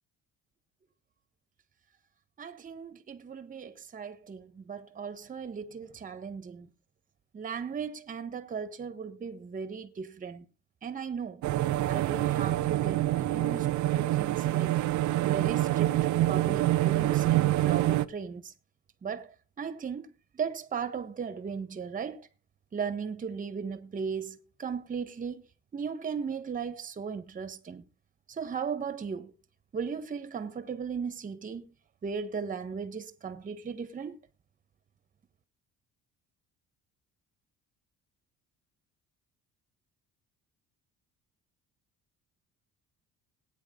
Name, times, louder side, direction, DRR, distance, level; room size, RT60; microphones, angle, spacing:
voice 1, 2.4-6.7 7.3-10.5 10.8-11.4 11.9-14.8 15.2-15.9 16.3-18.5 19.0-22.3 22.7-25.4 25.7-27.8 28.3-29.3 29.7-31.6 32.0-34.2, right 6 dB, 25° right, 1.3 m, -37 dB
sound 1, 11.4-18.1, right 15 dB, 65° right, 0.8 m, -26 dB
19.5 x 9.5 x 3.8 m
cardioid pair, 160°, 32 cm